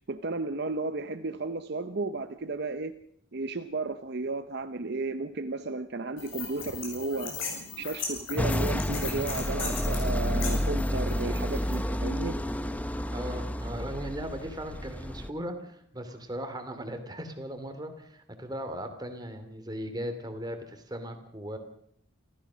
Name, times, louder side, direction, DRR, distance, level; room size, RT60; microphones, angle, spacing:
voice 1, 0.0-2.9 3.3-7.4 7.8-12.4, right 3 dB, 55° right, 9 dB, 0.8 m, -33 dB
sound 1, 6.2-11.8, left 5 dB, 70° left, 7.8 m, -38 dB
sound 2, 8.4-15.3, equal, 5° left, 0.8 m, -30 dB
voice 2, 13.1-21.6, equal, 20° right, 7 dB, 2.7 m, -38 dB
28.0 x 14.5 x 6.3 m, 0.70 s
head